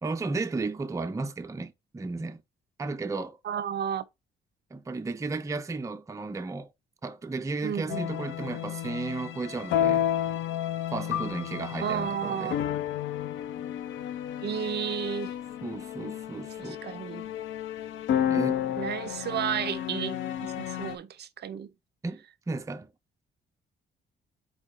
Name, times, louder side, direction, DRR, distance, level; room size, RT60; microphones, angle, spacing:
voice 1, 0.0-2.4 2.8-3.4 4.7-6.7 7.0-10.1 10.9-12.6 15.6-16.8 18.3-18.6 22.0-22.9, right 3 dB, 15° right, 0.5 m, -34 dB
voice 2, 3.4-4.0 7.6-8.1 11.8-12.6 14.4-15.3 16.6-17.3 18.2-18.5 18.8-20.2 20.6-21.7, right 9 dB, 55° right, 0.6 m, -32 dB
sound 1, 7.9-21.0, left 10 dB, 75° left, 0.6 m, -31 dB
4.4 x 2.6 x 4.5 m
cardioid pair, 90°, 20 cm